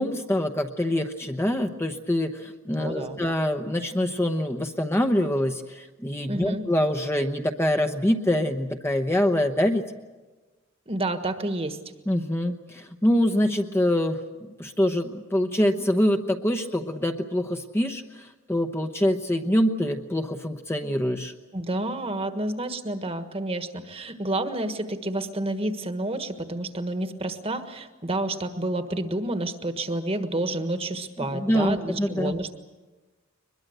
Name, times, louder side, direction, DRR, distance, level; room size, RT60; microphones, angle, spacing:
voice 1, 0.0-9.8 12.1-21.3 31.2-32.4, left 1 dB, 10° left, 6 dB, 0.9 m, -25 dB
voice 2, 2.8-3.2 6.3-6.7 10.9-11.8 21.5-32.5, right 1 dB, 30° right, 8 dB, 1.4 m, -29 dB
22.5 x 21.5 x 8.0 m, 1.2 s
head